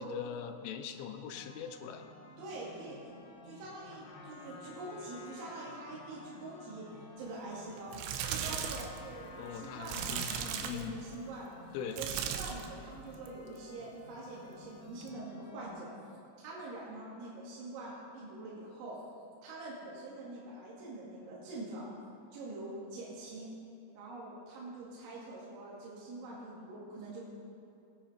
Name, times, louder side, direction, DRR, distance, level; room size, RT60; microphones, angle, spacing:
voice 1, 0.0-2.1 9.4-11.0 11.7-12.0, left 8 dB, 80° left, 7 dB, 3.2 m, -41 dB
sound 1, 1.3-15.7, left 1 dB, 35° left, 2.1 m, -55 dB
voice 2, 2.4-3.1 3.4-8.0 8.3-11.6 12.0-15.9 16.4-19.0 19.4-21.9 22.3-23.5 24.0-27.2, right 2 dB, 70° right, -6 dB, 4.3 m, -45 dB
Trumpet, 3.9-10.7, left 3 dB, 60° left, 2.6 m, -53 dB
sound 2, 7.8-9.0 9.9-10.9 11.9-12.7 13.1-13.5 15.0-15.1, right 8 dB, 85° right, 3.3 m, -37 dB
21.0 x 9.0 x 4.4 m, 2.7 s
omnidirectional pair, 5.7 m